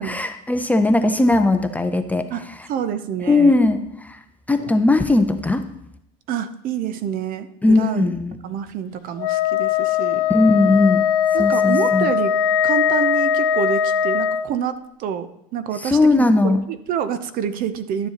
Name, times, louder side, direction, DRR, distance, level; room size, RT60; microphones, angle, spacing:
voice 1, 0.0-2.3 3.3-4.2 4.5-5.6 7.6-8.4 10.3-11.0 11.4-12.1 15.8-16.6, left 2 dB, 10° left, 7 dB, 0.5 m, -18 dB
voice 2, 2.3-3.6 4.6-4.7 6.3-8.1 8.4-10.3 11.3-12.3 12.6-18.1, right 8 dB, 50° right, 12 dB, 0.6 m, -27 dB
Wind instrument woodwind instrument, 9.2-14.5, left 8 dB, 85° left, 0.6 m, -20 dB
12.0 x 7.1 x 2.9 m, 0.77 s
supercardioid pair, 120°, 18 cm